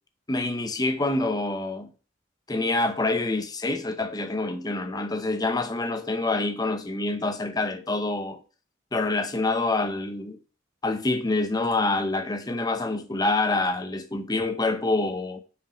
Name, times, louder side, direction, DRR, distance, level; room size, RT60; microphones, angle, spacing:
voice 1, 0.3-1.9 2.5-8.4 8.9-10.4 10.8-15.4, left 2 dB, 20° left, 0.7 m, -26 dB
5.3 x 5.1 x 5.0 m
head